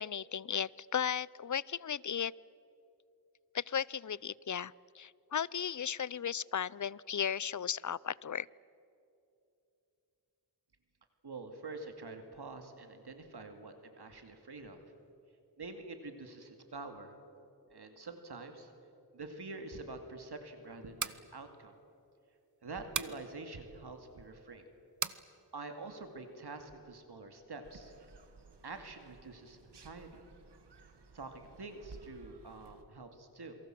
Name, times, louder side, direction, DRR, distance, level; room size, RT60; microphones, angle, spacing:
voice 1, 0.0-2.3 3.5-8.5, left 8 dB, 50° left, 23 dB, 0.5 m, -35 dB
voice 2, 11.2-14.8 15.6-17.2 17.7-18.7 19.1-21.7 22.6-24.7 25.5-27.9 28.6-30.2 30.8-30.9 31.1-33.6, right 3 dB, 75° right, 6 dB, 2.3 m, -46 dB
sound 1, 20.8-21.2 22.9-23.2 25.0-25.2, right 6 dB, 50° right, 1.0 m, -36 dB
sound 2, 27.6-32.8, right 4 dB, 90° right, 1.9 m, -57 dB
28.0 x 23.0 x 7.6 m, 2.7 s
wide cardioid pair, 70°, 40 cm